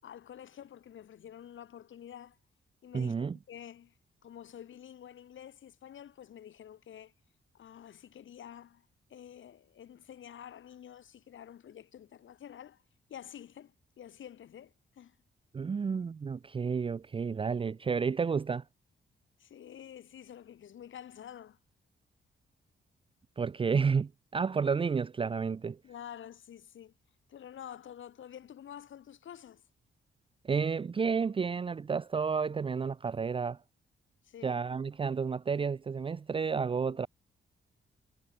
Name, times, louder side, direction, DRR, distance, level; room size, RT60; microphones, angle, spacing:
voice 1, 0.0-2.4 2.8-4.0 4.2-7.1 7.5-12.8 13.1-15.2 19.4-21.6 25.8-26.9 27.3-29.6 34.2-34.6 36.9-37.0, left 10 dB, 75° left, 6.5 m, -49 dB
voice 2, 2.9-3.4 15.5-18.6 23.4-25.8 30.4-33.6 34.4-37.1, right 5 dB, 25° right, 0.6 m, -31 dB
wide cardioid pair, 170°, 20 cm